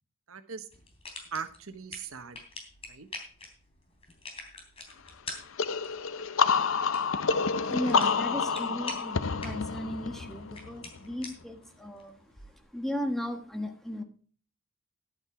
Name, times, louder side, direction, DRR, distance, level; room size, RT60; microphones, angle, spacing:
voice 1, 0.3-0.7 1.3-2.4 2.9-3.1, right 6 dB, 85° right, 10 dB, 1.1 m, -39 dB
sound 1, 0.7-12.6, left 3 dB, 30° left, 3.2 m, -47 dB
sound 2, 5.6-11.1, left 5 dB, 70° left, 0.6 m, -28 dB
voice 2, 7.7-14.0, left 1 dB, ahead, 4 dB, 1.3 m, -36 dB
11.5 x 8.8 x 4.9 m, 0.43 s
head